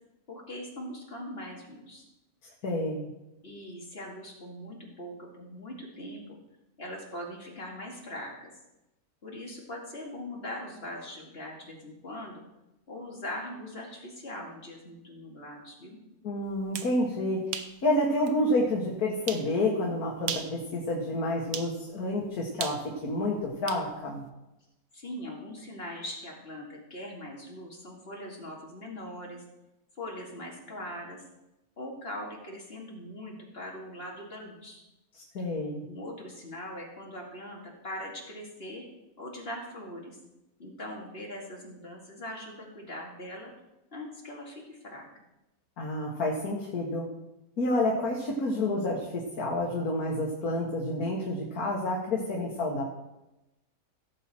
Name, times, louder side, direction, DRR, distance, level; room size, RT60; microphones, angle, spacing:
voice 1, 0.3-2.0 3.4-6.4 6.8-8.5 9.2-12.4 12.9-16.0 24.9-29.4 30.0-31.2 31.8-34.8 35.9-38.8 39.2-40.2 40.6-43.5 43.9-45.1, left 1 dB, 40° left, -1 dB, 2.6 m, -41 dB
voice 2, 2.6-3.1 16.2-17.4 17.8-24.2 35.2-35.8 45.8-47.1 47.6-52.8, left 1 dB, 75° left, -2 dB, 2.1 m, -29 dB
sound 1, 16.5-16.9 17.5-17.7 18.3-18.4 19.3-19.5 20.2-20.6 21.5-21.7 22.6-23.9, right 7 dB, 70° right, 1.3 m, -36 dB
16.5 x 7.5 x 4.5 m, 0.95 s
omnidirectional pair, 1.6 m